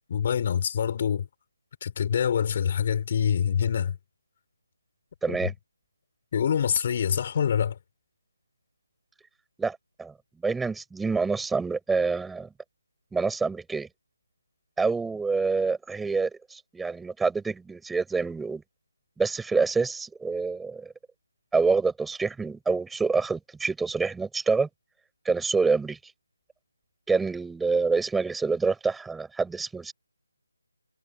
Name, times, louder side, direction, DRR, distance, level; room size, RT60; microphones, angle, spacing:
voice 1, 0.1-1.2 1.8-3.9 5.3-5.4 6.3-7.8, left 8 dB, 35° left, 6.7 m, -25 dB
voice 2, 5.2-5.5 9.6-10.1 10.4-12.5 13.1-13.9 14.8-18.6 19.2-20.9 21.5-24.7 25.2-26.0 27.1-29.9, right 4 dB, 5° right, 7.9 m, -27 dB
figure-of-eight pair, 165°, 0 cm